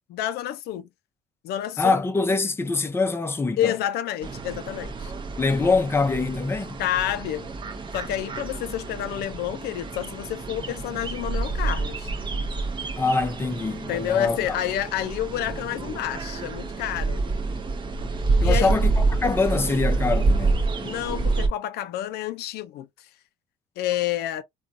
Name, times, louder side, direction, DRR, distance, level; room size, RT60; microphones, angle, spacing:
voice 1, 0.1-0.9 1.4-2.0 3.6-5.1 6.8-7.5 7.9-12.1 13.9-17.2 18.4-18.8 20.8-23.1 23.8-24.4, left 12 dB, 75° left, 0.4 m, -29 dB
voice 2, 1.8-3.7 5.4-6.8 13.0-14.6 18.4-20.6, left 4 dB, 15° left, 0.5 m, -24 dB
sound 1, 4.2-21.5, right 3 dB, 30° right, 0.7 m, -28 dB
3.8 x 2.3 x 2.6 m
cardioid pair, 110°, 17 cm